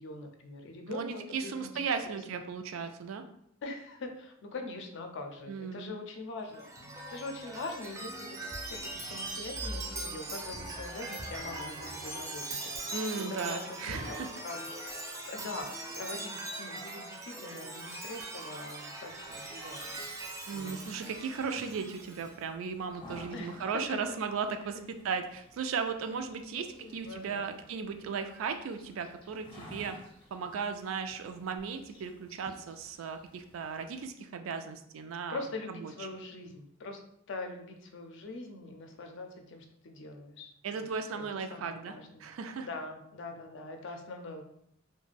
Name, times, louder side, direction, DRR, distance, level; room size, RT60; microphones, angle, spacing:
voice 1, 0.0-1.7 2.1-2.4 3.6-6.7 7.1-14.7 15.2-20.0 20.5-20.9 23.3-23.8 24.1-24.2 26.5-27.6 30.5-30.6 35.3-37.0 37.3-40.8 41.1-42.3 42.6-44.4, left 2 dB, 65° left, 4 dB, 0.4 m, -43 dB
voice 2, 0.9-3.2 5.5-5.9 12.9-14.3 20.5-26.7 26.9-30.0 30.3-35.4 35.7-36.2 40.6-41.9 42.2-42.7, right 5 dB, 80° right, 7 dB, 0.3 m, -36 dB
Chime, 6.5-22.3, right 2 dB, 15° right, 0.4 m, -41 dB
sound 1, 19.1-34.1, equal, 25° left, 0.6 m, -55 dB
2.4 x 2.2 x 3.2 m, 0.73 s
head